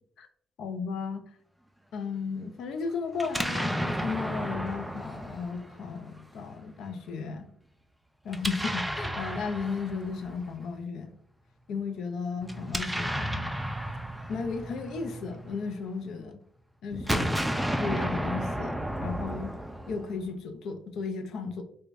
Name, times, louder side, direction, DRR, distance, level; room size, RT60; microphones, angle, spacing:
voice 1, 0.6-1.2 1.9-7.5 8.2-11.1 11.7-13.6 14.3-16.3 16.8-17.3 17.8-19.5 19.9-21.6, left 5 dB, 75° left, 7 dB, 0.5 m, -34 dB
Explosion, 3.2-6.2 8.3-10.5 12.4-15.9 16.9-20.3, equal, 5° right, 0.4 m, -33 dB
4.6 x 2.2 x 2.6 m, 0.63 s
cardioid pair, 90°, 0 cm